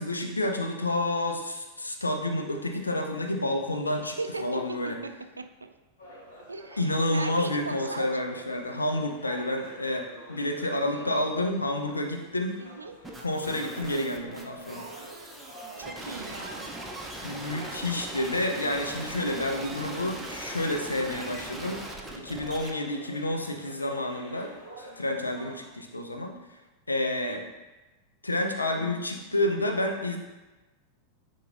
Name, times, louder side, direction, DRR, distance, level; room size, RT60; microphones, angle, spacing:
voice 1, 0.0-5.0 6.8-12.6 13.2-14.9 17.2-21.8 22.1-26.3 26.9-27.4 28.2-30.2, left 1 dB, 80° left, 3 dB, 0.7 m, -29 dB
voice 2, 4.2-4.6 5.0-5.1 5.4-5.7 6.5-8.1 10.8-11.5 12.6-12.9 15.8-16.7 27.3-27.4, right 3 dB, 80° right, 8 dB, 0.4 m, -37 dB
sound 1, 6.0-25.6, equal, 60° left, 1.6 m, -48 dB
sound 2, 13.0-22.7, right 1 dB, 5° right, 0.7 m, -40 dB
9.6 x 3.9 x 2.5 m, 1.1 s
figure-of-eight pair, 90°, 0 cm